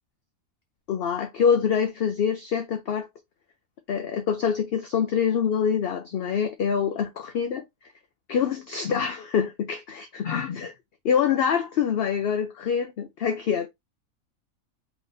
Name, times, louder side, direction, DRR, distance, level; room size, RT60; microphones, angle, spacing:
voice 1, 0.9-3.1 3.9-7.6 8.3-10.7 11.0-13.7, left 7 dB, 65° left, 0.6 m, -25 dB
4.1 x 3.9 x 2.5 m
omnidirectional pair, 1.5 m